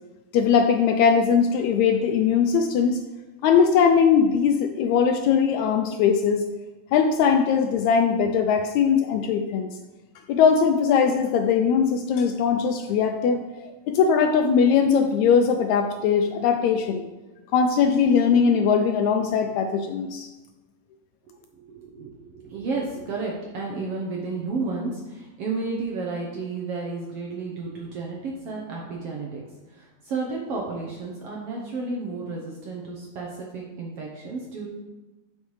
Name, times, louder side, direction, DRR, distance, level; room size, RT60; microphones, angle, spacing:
voice 1, 0.3-3.0 3.4-6.4 6.9-9.7 10.3-17.0 17.5-20.3, left 6 dB, 80° left, 5 dB, 1.7 m, -20 dB
voice 2, 21.5-29.4 29.7-34.7, right 3 dB, 70° right, -2 dB, 1.5 m, -32 dB
9.7 x 5.5 x 3.2 m, 1.1 s
omnidirectional pair, 3.6 m